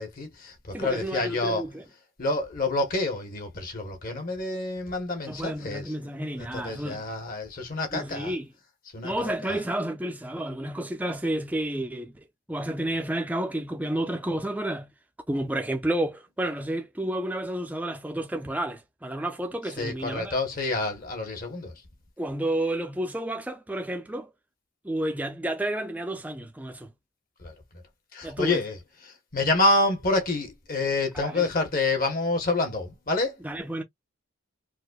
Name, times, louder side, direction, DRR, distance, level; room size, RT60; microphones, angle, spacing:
voice 1, 0.0-1.6 2.2-8.3 8.9-9.6 19.8-21.8 27.4-27.5 28.1-33.4 33.8-33.9, left 2 dB, 40° left, 0.9 m, -28 dB
voice 2, 0.7-1.7 5.3-7.0 7.9-8.5 9.0-14.9 15.3-20.3 22.2-24.3 24.8-26.9 28.2-28.6 31.1-31.4 33.4-33.8, right 1 dB, 5° right, 0.4 m, -31 dB
4.6 x 2.1 x 2.2 m
head